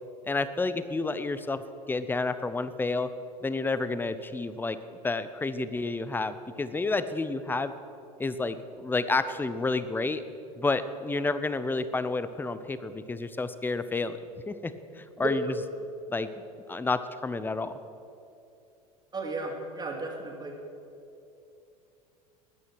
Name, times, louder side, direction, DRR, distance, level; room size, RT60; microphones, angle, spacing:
voice 1, 0.2-1.6 1.9-3.1 3.4-4.8 5.0-7.7 8.2-10.2 10.6-14.2 14.5-15.5 16.1-16.3 16.7-17.7, left 3 dB, 10° left, 12 dB, 0.7 m, -30 dB
voice 2, 19.1-20.6, right 3 dB, 20° right, 1 dB, 2.7 m, -34 dB
13.5 x 9.8 x 6.1 m, 2.7 s
figure-of-eight pair, 75°, 20 cm